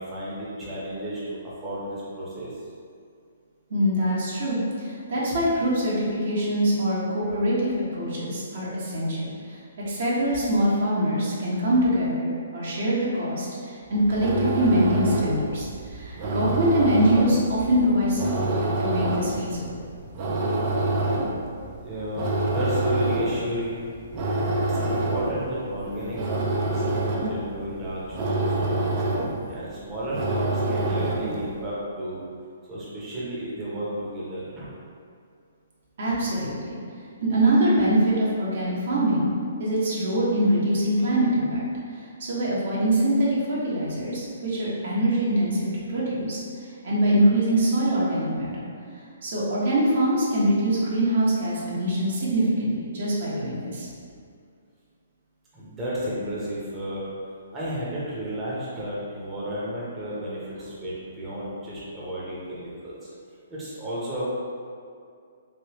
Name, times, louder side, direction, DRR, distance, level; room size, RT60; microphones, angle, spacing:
voice 1, 0.0-2.7 21.8-23.9 24.7-28.9 29.5-32.2 32.7-34.7 55.5-57.1 57.5-63.1 63.5-64.2, right 1 dB, 15° right, -9 dB, 0.8 m, -33 dB
voice 2, 3.7-9.6 9.9-19.8 36.0-36.8 37.2-39.3 39.6-41.6 41.9-46.4 46.8-48.7 49.2-53.9, right 1 dB, 60° right, -7 dB, 0.9 m, -24 dB
sound 1, 13.9-31.5, right 2 dB, 40° right, 0.5 m, -27 dB
3.3 x 2.7 x 2.9 m, 2.3 s
hypercardioid pair, 130°, 0 cm